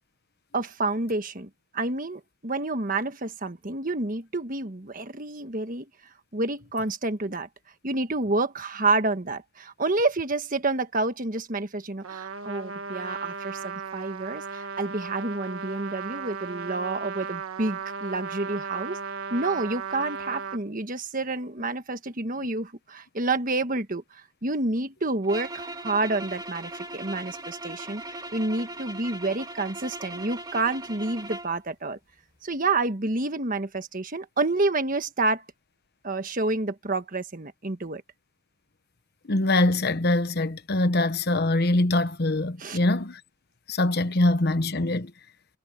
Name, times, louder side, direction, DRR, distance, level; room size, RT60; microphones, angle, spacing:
voice 1, 0.5-5.8 6.3-7.5 7.8-19.0 19.3-32.0 32.4-35.4 36.0-38.0 42.6-42.8, right 2 dB, 40° right, 1.4 m, -29 dB
Trumpet, 12.0-20.6, right 5 dB, 80° right, 1.4 m, -36 dB
sound 1, 25.2-31.6, right 2 dB, 20° right, 2.4 m, -39 dB
voice 2, 39.3-43.2 43.7-45.1, left 2 dB, 50° left, 1.0 m, -23 dB
head